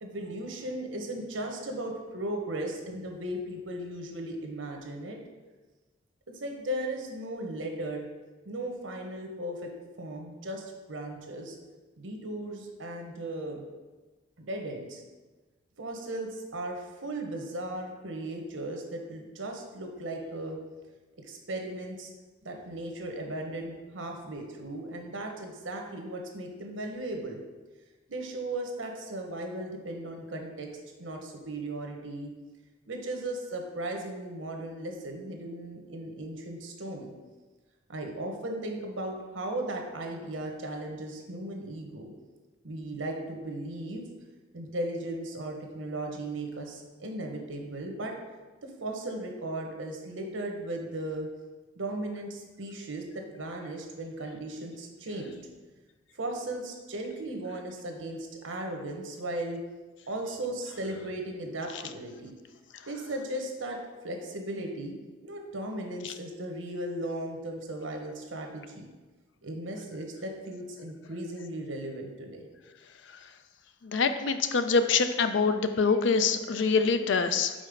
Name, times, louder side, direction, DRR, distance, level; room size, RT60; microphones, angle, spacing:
voice 1, 0.0-5.2 6.3-8.0 8.4-9.7 10.0-11.6 12.0-13.6 14.4-15.0 15.8-20.6 21.3-22.1 22.4-27.4 28.1-30.7 31.0-32.3 32.9-37.1 37.9-42.1 42.6-44.1 44.5-48.1 48.6-51.3 51.8-55.6 56.1-59.6 60.1-62.3 62.9-63.8 64.0-64.9 65.2-68.9 69.4-72.5, right 1 dB, 90° right, 2 dB, 1.0 m, -36 dB
voice 2, 73.8-77.5, left 5 dB, 70° left, 9 dB, 0.5 m, -25 dB
5.2 x 4.2 x 5.2 m, 1.3 s
head